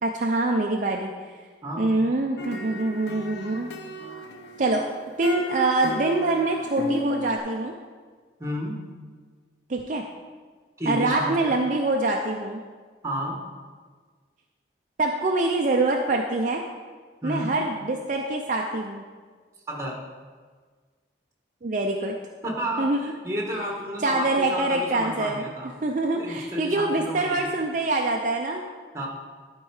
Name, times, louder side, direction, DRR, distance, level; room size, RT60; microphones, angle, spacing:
voice 1, 0.0-1.1 1.8-3.7 4.6-4.9 5.2-7.7 9.7-10.0 10.9-12.6 15.0-16.6 17.2-19.0 21.6-22.1 22.8-23.1 24.0-25.4 25.8-28.6, right 2 dB, 45° right, 1 dB, 0.5 m, -25 dB
voice 2, 1.6-2.1 8.4-8.8 10.8-11.6 13.0-13.5 17.2-17.5 19.7-20.0 22.4-22.9 23.2-25.7 26.1-27.5 28.9-29.1, equal, 15° right, -1 dB, 1.5 m, -31 dB
sound 1, 2.4-7.4, left 1 dB, 75° left, 0.8 m, -34 dB
11.5 x 4.5 x 4.8 m, 1.5 s
head